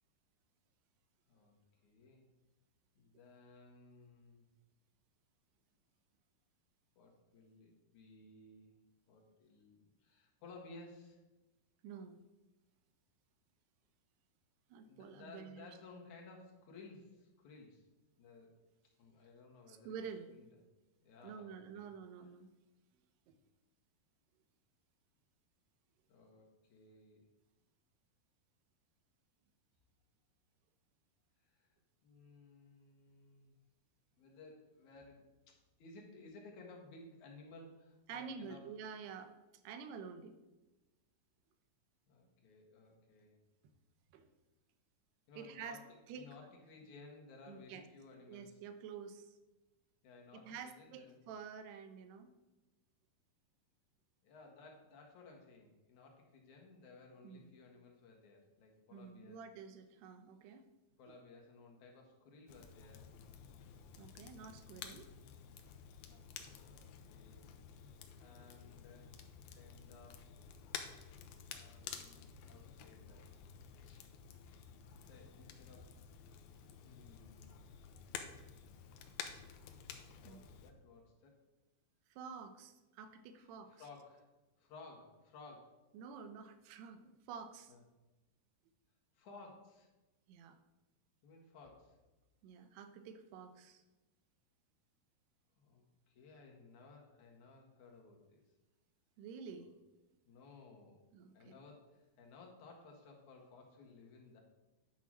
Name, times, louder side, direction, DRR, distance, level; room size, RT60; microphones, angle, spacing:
voice 1, 1.3-2.3 2.9-4.5 7.0-8.7 9.1-11.2 14.9-17.9 18.2-18.6 19.0-20.0 20.3-20.5 21.0-21.8 26.1-27.3 31.4-31.7 32.0-33.5 34.1-38.7 42.1-43.4 45.3-48.6 50.0-51.2 54.2-59.4 61.0-63.1 66.0-67.5 68.2-69.2 69.6-70.3 71.5-73.3 73.9-74.0 75.1-75.9 76.8-77.6 79.9-81.5 83.4-84.3 84.6-85.9 87.7-87.8 89.1-89.9 91.2-92.0 95.6-98.4 99.6-99.7 100.3-101.0 101.3-104.4, left 3 dB, 55° left, 0 dB, 2.7 m, -58 dB
voice 2, 11.8-12.2 14.7-15.7 19.7-20.3 21.2-22.5 23.3-23.4 38.1-39.3 39.6-40.4 44.1-44.3 45.4-45.8 46.1-46.3 47.5-47.9 48.3-49.4 50.4-52.3 57.2-57.5 58.9-60.7 64.0-65.1 80.2-80.4 82.1-83.8 85.9-87.7 90.3-90.6 92.4-93.8 99.2-99.7 101.1-101.6, right 6 dB, 85° right, 9 dB, 2.9 m, -49 dB
Crackle, 62.5-80.7, left 7 dB, 80° left, 2.6 m, -52 dB
10.5 x 5.9 x 6.2 m, 1.1 s
omnidirectional pair, 4.6 m